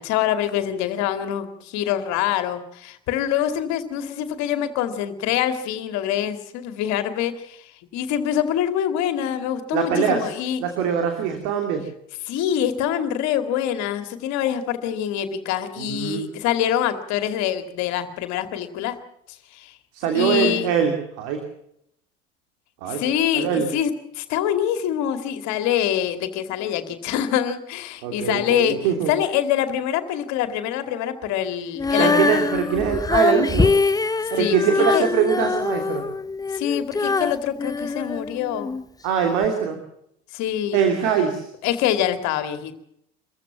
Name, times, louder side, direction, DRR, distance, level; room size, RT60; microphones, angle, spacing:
voice 1, 0.0-10.6 12.3-19.0 19.5-19.8 20.1-20.7 22.9-28.8 29.1-32.4 34.3-35.0 36.5-38.7 40.3-40.9 41.6-42.7, left 10 dB, 60° left, 9 dB, 2.4 m, -25 dB
voice 2, 9.7-10.3 10.6-11.8 15.8-16.3 19.9-21.4 22.8-23.0 23.3-23.7 28.0-29.1 32.0-33.7 34.3-36.0 39.0-39.8 40.7-41.4, right 7 dB, 65° right, 4 dB, 3.0 m, -23 dB
Female singing, 31.8-38.8 39.4-39.5, left 4 dB, 10° left, 0.7 m, -23 dB
24.5 x 15.0 x 7.3 m, 0.74 s
hypercardioid pair, 65°, 32 cm